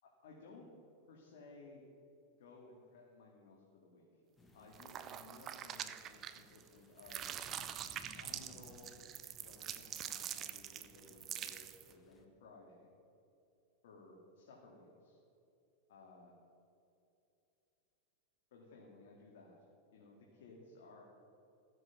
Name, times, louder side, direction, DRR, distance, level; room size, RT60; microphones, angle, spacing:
voice 1, 0.2-0.7 1.1-1.8 2.4-4.1 4.5-7.3 8.2-9.0 9.4-11.6 11.9-12.9 13.8-15.2 15.9-16.3 18.5-19.6 19.9-21.0, left 3 dB, 75° left, -2 dB, 2.2 m, -58 dB
sound 1, 4.4-12.2, left 2 dB, 15° left, 1.2 m, -63 dB
sound 2, 4.7-6.7 7.0-11.9, right 10 dB, 30° right, 0.6 m, -45 dB
15.5 x 7.8 x 6.0 m, 2.8 s
supercardioid pair, 140°, 0 cm